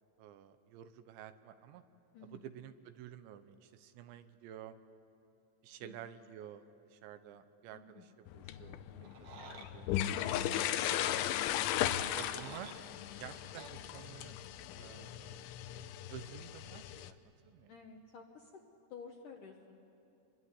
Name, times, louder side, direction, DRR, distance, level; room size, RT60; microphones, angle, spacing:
voice 1, 0.2-1.8 2.3-4.7 5.6-10.0 10.9-11.5 12.1-12.7 13.2-14.4 14.8-15.4 16.1-17.2 17.4-17.7, right 10 dB, 80° right, 10 dB, 3.2 m, -51 dB
voice 2, 2.1-2.4 5.8-6.0 7.7-8.1 17.7-18.6 18.9-19.9, left 5 dB, 70° left, 2 dB, 2.0 m, -52 dB
sound 1, 8.3-17.1, left 12 dB, 85° left, 3.2 m, -37 dB
sound 2, 9.0-9.7 10.5-10.7 11.9-12.8 13.6-13.7, right 4 dB, 60° right, 3.4 m, -51 dB
26.5 x 22.5 x 9.7 m, 3.0 s
omnidirectional pair, 5.3 m